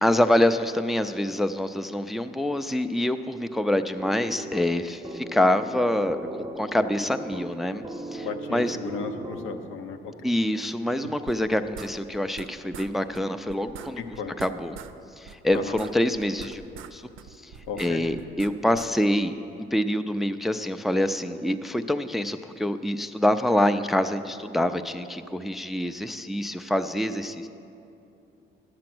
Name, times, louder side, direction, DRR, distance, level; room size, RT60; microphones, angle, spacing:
voice 1, 0.0-6.2 6.5-8.8 10.2-14.0 14.4-14.8 15.2-16.6 16.9-17.0 17.4-17.5 17.8-27.5, left 1 dB, ahead, 9 dB, 0.3 m, -26 dB
sound 1, 4.0-10.0, right 1 dB, 15° right, 0.8 m, -38 dB
voice 2, 8.2-10.1 14.0-14.3 15.5-15.8 17.7-18.0, left 5 dB, 85° left, 6 dB, 0.8 m, -35 dB
sound 2, 11.3-12.5 12.7-12.9 13.1-13.2 13.5-14.9 15.3-16.9 17.2-18.9, right 8 dB, 85° right, 0.5 m, -42 dB
10.5 x 7.6 x 6.0 m, 2.8 s
cardioid pair, 90°, 20 cm